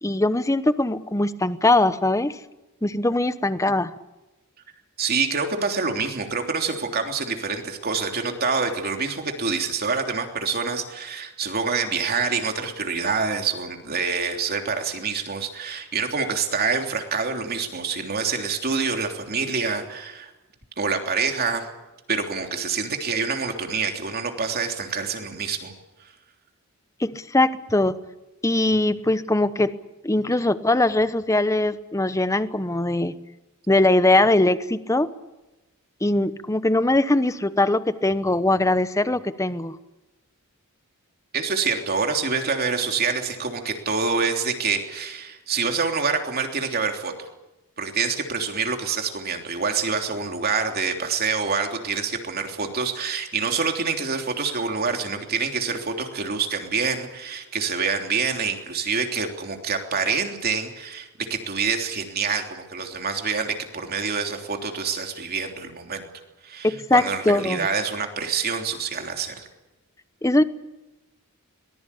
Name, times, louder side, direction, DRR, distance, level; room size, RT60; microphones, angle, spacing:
voice 1, 0.0-2.4 2.8-3.9 27.0-28.0 28.4-29.7 30.0-33.2 33.7-35.1 36.0-39.8 66.6-67.7 70.2-70.4, left 2 dB, 15° left, 14 dB, 0.9 m, -21 dB
voice 2, 5.0-20.3 20.8-21.6 22.1-25.7 41.3-47.1 47.8-66.1 66.4-69.5, right 5 dB, 45° right, 4 dB, 3.3 m, -26 dB
23.0 x 20.5 x 8.5 m, 1.0 s
head